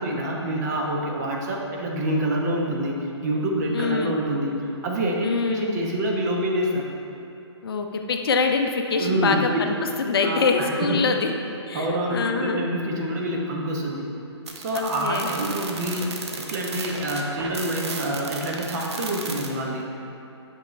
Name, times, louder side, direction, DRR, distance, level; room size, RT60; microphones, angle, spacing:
voice 1, 0.0-6.9 9.0-9.6 10.2-11.0 11.7-14.0 14.6-16.1 16.4-19.9, right 1 dB, 35° right, -1 dB, 1.0 m, -26 dB
voice 2, 3.7-4.2 5.2-5.9 7.6-9.7 10.0-11.3 11.7-12.6 14.7-15.3, left 4 dB, 55° left, 4 dB, 0.6 m, -24 dB
sound 1, 14.5-19.5, right 4 dB, 65° right, 0.9 m, -34 dB
8.2 x 5.5 x 3.2 m, 2.8 s
hypercardioid pair, 150°, 15 cm